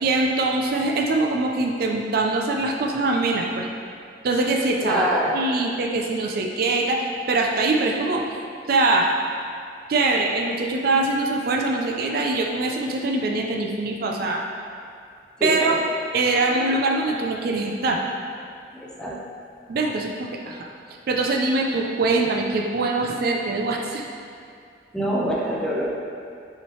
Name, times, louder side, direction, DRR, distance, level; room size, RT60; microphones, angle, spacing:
voice 1, 0.0-3.7 4.2-5.0 5.3-8.2 8.7-9.1 9.9-14.4 15.4-15.8 16.1-18.0 19.7-20.7 21.1-24.0, right 2 dB, 55° right, 1 dB, 0.4 m, -23 dB
voice 2, 4.8-5.4 15.4-15.8 18.7-19.2 24.9-25.9, right 1 dB, 5° left, -4 dB, 0.5 m, -25 dB
5.5 x 3.1 x 3.0 m, 2.3 s
head